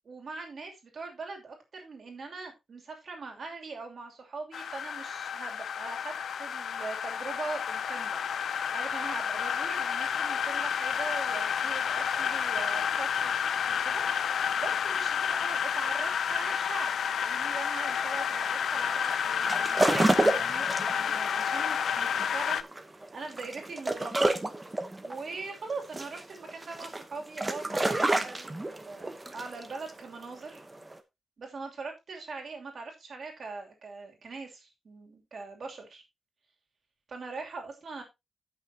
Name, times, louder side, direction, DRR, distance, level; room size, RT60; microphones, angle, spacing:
voice 1, 0.0-8.2 8.7-22.6 23.0-24.3 25.0-30.6 31.4-36.0 37.1-38.0, right 4 dB, 45° right, 3 dB, 2.8 m, -41 dB
sound 1, 4.5-22.6, left 8 dB, 70° left, 0.5 m, -30 dB
sound 2, 17.9-31.0, right 2 dB, 15° right, 0.9 m, -30 dB
16.0 x 6.1 x 2.8 m, 0.23 s
wide cardioid pair, 180°, 0 cm